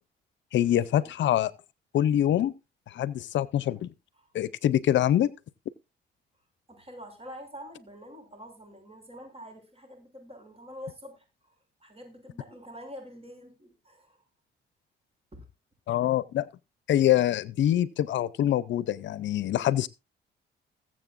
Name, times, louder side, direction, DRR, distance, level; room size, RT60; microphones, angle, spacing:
voice 1, 0.5-1.5 1.9-2.5 2.9-3.9 4.3-5.3 15.9-16.5 16.9-19.9, left 11 dB, 70° left, 0.6 m, -25 dB
voice 2, 6.7-11.5 11.8-14.2 15.3-15.4, equal, 30° right, 6.8 m, -46 dB
21.0 x 7.6 x 2.5 m
cardioid pair, 90°, 20 cm